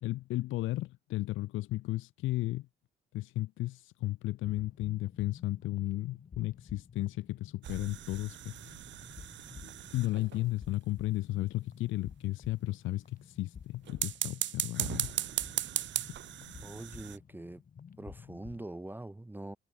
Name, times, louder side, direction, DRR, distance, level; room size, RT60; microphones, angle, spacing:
voice 1, 0.0-2.7 3.1-8.6 9.9-15.1, left 17 dB, 85° left, 0.6 m, -34 dB
sound 1, 4.4-18.7, left 7 dB, 45° left, 1.9 m, -52 dB
sound 2, 7.6-10.5 13.9-17.2, right 12 dB, 65° right, 1.0 m, -37 dB
voice 2, 16.6-17.6 18.0-19.6, right 1 dB, 10° right, 0.8 m, -43 dB
cardioid pair, 90°, 20 cm